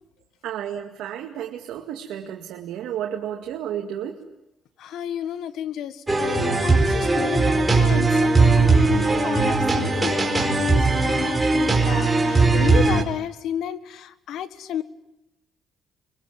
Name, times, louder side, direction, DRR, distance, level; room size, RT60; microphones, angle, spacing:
voice 1, 0.4-4.2, right 10 dB, 85° right, 2 dB, 2.1 m, -32 dB
voice 2, 4.8-14.8, left 10 dB, 80° left, 14 dB, 1.6 m, -32 dB
sound 1, 6.1-13.0, right 3 dB, 15° right, 4.5 m, -19 dB
25.0 x 22.5 x 9.4 m, 0.89 s
cardioid pair, 90°, 0 cm